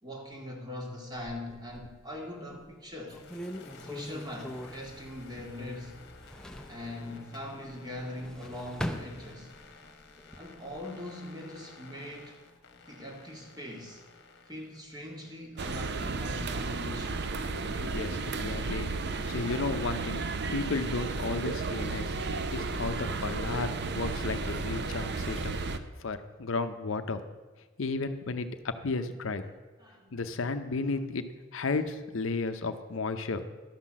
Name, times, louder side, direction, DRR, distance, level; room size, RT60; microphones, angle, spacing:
voice 1, 0.0-3.2 3.7-6.0 6.7-9.5 10.4-12.4 12.9-14.0 14.4-17.2 29.8-30.2, left 1 dB, 20° right, 1 dB, 1.6 m, -41 dB
sound 1, 1.1-2.1 2.6-2.7 3.1-5.7 6.0-6.8 8.0-9.7 10.2-10.8, equal, 5° left, 0.5 m, -41 dB
sound 2, 3.1-15.9, left 3 dB, 50° left, 1.2 m, -53 dB
sound 3, 15.6-25.8, right 3 dB, 50° right, 0.6 m, -33 dB
voice 2, 17.8-18.9 19.3-20.2 20.5-22.2 22.5-27.2 27.8-29.4 30.1-31.3 31.5-33.6, left 3 dB, 65° left, 9 dB, 0.6 m, -33 dB
12.0 x 5.9 x 7.3 m, 1.3 s
head